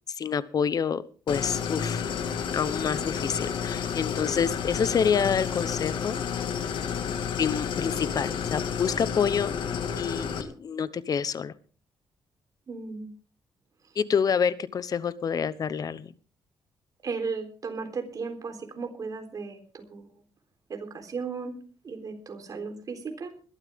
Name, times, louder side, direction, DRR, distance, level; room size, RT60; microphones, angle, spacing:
voice 1, 0.2-2.0 2.5-6.2 7.4-9.5 10.0-11.5 14.0-16.1, left 7 dB, 45° left, 16 dB, 1.0 m, -27 dB
Idling, 1.3-10.4, left 7 dB, 70° left, 2.0 m, -31 dB
voice 2, 12.7-13.1 17.0-20.2 20.7-21.6 21.8-23.4, right 4 dB, 45° right, 6 dB, 3.8 m, -35 dB
21.0 x 12.0 x 3.7 m, 0.38 s
cardioid pair, 105°, 8 cm